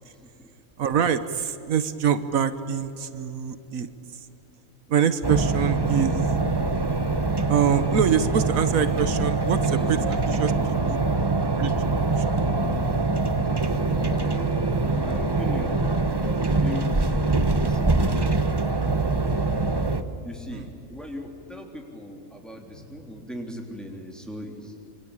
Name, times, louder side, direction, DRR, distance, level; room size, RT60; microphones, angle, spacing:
voice 1, 0.8-4.3 4.9-6.2 7.5-11.0 11.4-11.7 12.1-12.4 20.5-20.7, right 8 dB, 90° right, 12 dB, 1.5 m, -25 dB
sound 1, 5.2-20.0, right 3 dB, 20° right, 1.0 m, -24 dB
voice 2, 9.7-10.4 11.0-11.6 13.9-14.5 14.9-15.9 16.2-17.2 17.5-18.9 20.2-24.7, equal, ahead, 1 dB, 3.6 m, -39 dB
27.0 x 24.5 x 8.9 m, 2.9 s
omnidirectional pair, 1.4 m